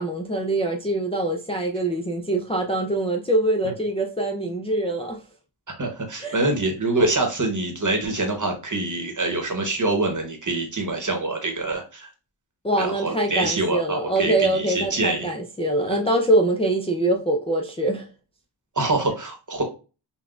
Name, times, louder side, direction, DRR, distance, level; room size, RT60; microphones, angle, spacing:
voice 1, 0.0-5.2 6.2-6.4 12.6-18.1, right 1 dB, 15° left, 0.4 m, -24 dB
voice 2, 5.8-12.1 12.8-15.3 15.9-16.0 18.8-19.6, right 2 dB, 40° right, 1.0 m, -25 dB
5.7 x 2.3 x 2.4 m
wide cardioid pair, 75°, 46 cm